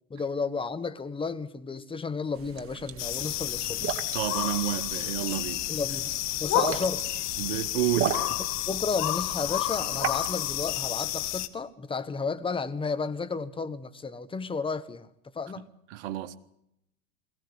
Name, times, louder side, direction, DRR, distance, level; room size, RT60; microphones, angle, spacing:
voice 1, 0.1-3.9 5.7-6.1 6.4-7.0 8.7-15.1 15.3-15.7, left 4 dB, 15° left, 1.3 m, -32 dB
sound 1, 2.3-10.8, right 10 dB, 35° right, 2.0 m, -37 dB
sound 2, 3.0-11.5, left 14 dB, 40° left, 1.6 m, -30 dB
voice 2, 4.1-5.7 7.4-8.5 15.9-16.4, right 13 dB, 60° right, 1.6 m, -30 dB
21.5 x 16.5 x 9.8 m
hypercardioid pair, 100°, 40 cm